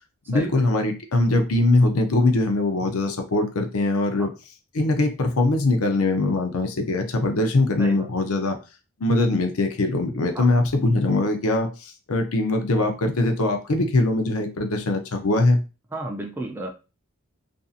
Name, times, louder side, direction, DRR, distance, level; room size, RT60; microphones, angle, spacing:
voice 1, 0.3-4.3 4.7-8.6 9.0-15.6, left 2 dB, 75° left, 5 dB, 0.6 m, -22 dB
voice 2, 15.9-16.7, right 2 dB, 10° right, 2 dB, 0.3 m, -32 dB
2.6 x 2.5 x 2.4 m, 0.30 s
head